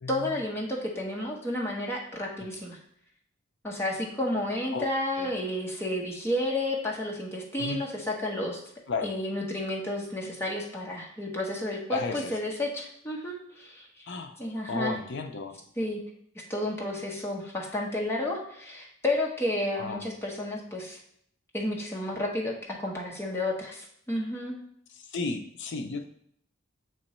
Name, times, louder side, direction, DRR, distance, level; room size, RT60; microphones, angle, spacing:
voice 1, 0.1-2.8 3.6-8.6 9.0-14.1 14.4-15.0 15.8-16.0 16.5-21.0 21.5-24.6, left 1 dB, 10° left, -2 dB, 0.9 m, -31 dB
voice 2, 11.9-12.3 14.1-14.3 14.7-15.6 19.8-20.0 25.1-26.0, left 4 dB, 55° left, 6 dB, 0.5 m, -33 dB
7.7 x 2.9 x 4.2 m, 0.68 s
head